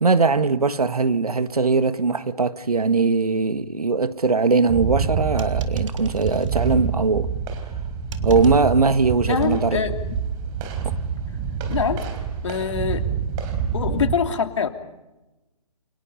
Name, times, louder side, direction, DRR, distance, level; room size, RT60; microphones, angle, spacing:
voice 1, 0.0-7.3 8.2-9.8 10.8-10.9, right 4 dB, 70° right, 1.6 m, -20 dB
sound 1, 4.7-14.1, right 6 dB, 20° right, 3.8 m, -27 dB
sound 2, 5.4-6.6 8.1-8.6, right 6 dB, 55° right, 3.5 m, -44 dB
voice 2, 9.3-9.9 11.7-12.0 12.4-13.0 13.7-14.7, left 6 dB, 50° left, 3.0 m, -24 dB
29.5 x 28.5 x 5.6 m
figure-of-eight pair, 140°, 20 cm